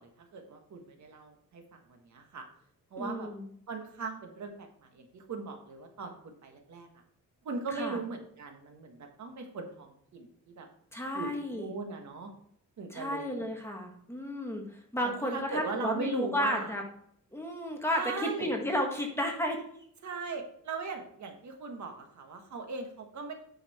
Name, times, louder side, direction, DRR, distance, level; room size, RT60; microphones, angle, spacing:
voice 1, 0.0-1.6 1.9-2.4 2.9-3.3 3.7-6.9 7.4-10.3 10.6-10.7 11.1-12.3 12.8-13.4 15.2-16.7 17.9-18.5 20.0-23.3, right 4 dB, 60° right, 4 dB, 1.5 m, -39 dB
voice 2, 3.0-3.5 7.7-8.0 10.9-11.7 12.9-16.8 17.3-19.6, equal, 10° left, 1 dB, 1.6 m, -33 dB
9.3 x 5.8 x 4.3 m, 0.66 s
wide cardioid pair, 155°, 33 cm